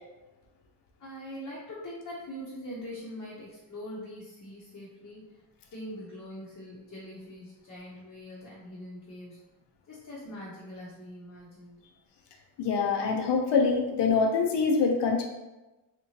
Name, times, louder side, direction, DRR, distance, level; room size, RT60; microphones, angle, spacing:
voice 1, 1.0-5.2 5.7-9.4 9.9-11.8, equal, 40° left, -7 dB, 0.8 m, -42 dB
voice 2, 12.6-15.2, left 5 dB, 70° left, 1 dB, 0.7 m, -25 dB
3.3 x 3.0 x 2.8 m, 1.1 s
wide cardioid pair, 125°, 43 cm